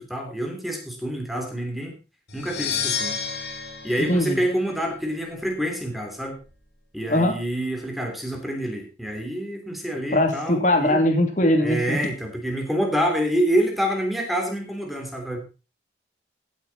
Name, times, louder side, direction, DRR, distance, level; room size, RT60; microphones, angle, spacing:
voice 1, 0.0-1.9 2.3-3.2 3.8-6.4 6.9-11.0 11.6-15.4, equal, ahead, 2 dB, 3.2 m, -27 dB
sound 1, 2.3-5.1, left 6 dB, 80° left, 2.7 m, -31 dB
voice 2, 4.1-4.4 7.1-7.4 10.1-12.0, left 1 dB, 45° left, 4 dB, 2.8 m, -21 dB
15.5 x 8.3 x 4.1 m, 0.31 s
head